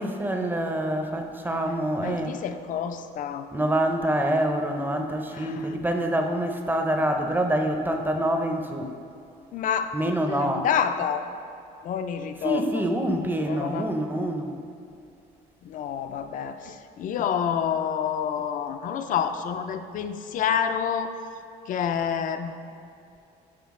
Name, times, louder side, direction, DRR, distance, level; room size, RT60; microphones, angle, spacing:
voice 1, 0.0-2.3 3.5-9.0 9.9-10.7 12.4-14.5, right 1 dB, 10° right, 4 dB, 0.5 m, -26 dB
voice 2, 1.5-3.5 5.3-5.8 9.5-9.9 10.3-11.2 11.8-12.9 13.5-13.9 15.6-21.1 21.7-22.6, left 8 dB, 50° left, 9 dB, 0.4 m, -28 dB
5.8 x 5.4 x 3.6 m, 2.6 s
cardioid pair, 110°, 17 cm